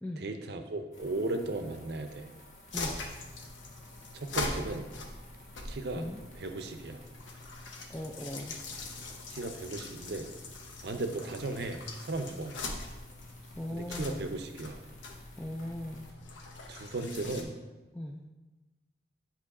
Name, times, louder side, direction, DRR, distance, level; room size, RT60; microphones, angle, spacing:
voice 1, 0.2-2.3 4.1-4.9 5.6-6.1 6.4-7.0 9.3-10.3 10.8-12.5 13.7-14.8 16.7-17.5, right 2 dB, 55° right, 6 dB, 0.6 m, -36 dB
sound 1, 0.9-16.1, left 1 dB, 40° left, 1.3 m, -55 dB
sound 2, 2.7-17.4, left 3 dB, 80° left, 0.8 m, -42 dB
voice 2, 7.9-8.6 12.3-12.4 13.6-14.3 15.4-16.1 17.9-18.2, left 1 dB, 5° left, -1 dB, 0.3 m, -39 dB
8.5 x 3.1 x 4.8 m, 1.1 s
head